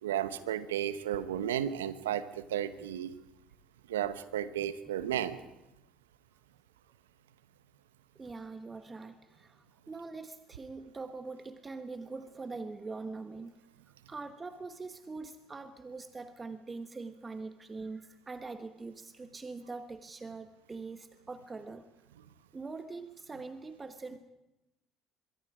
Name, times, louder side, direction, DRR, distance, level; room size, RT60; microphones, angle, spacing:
voice 1, 0.0-3.1 3.9-5.4, right 10 dB, 85° right, 14 dB, 0.9 m, -33 dB
voice 2, 8.1-13.6 14.1-21.8 22.5-24.2, right 3 dB, 25° right, 9 dB, 1.3 m, -43 dB
25.0 x 22.5 x 5.0 m, 0.96 s
hypercardioid pair, 60°, 0 cm